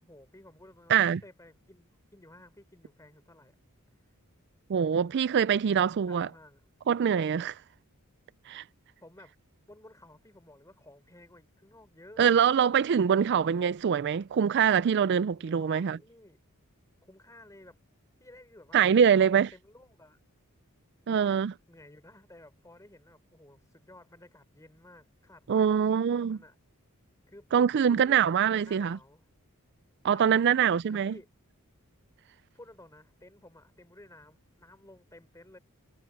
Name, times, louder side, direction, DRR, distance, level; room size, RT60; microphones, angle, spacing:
voice 1, 0.0-3.5 5.9-6.7 9.0-9.3 9.7-12.3 15.3-16.4 17.0-17.8 18.2-20.2 21.1-26.6 27.3-29.2 30.1-31.3 32.5-35.6, left 1 dB, 15° left, 4.5 m, -54 dB
voice 2, 0.9-1.2 4.7-6.3 6.9-7.6 8.5-8.6 12.2-16.0 18.7-19.5 21.1-21.5 25.5-26.4 27.5-29.0 30.0-31.1, right 7 dB, 50° right, 0.4 m, -24 dB
head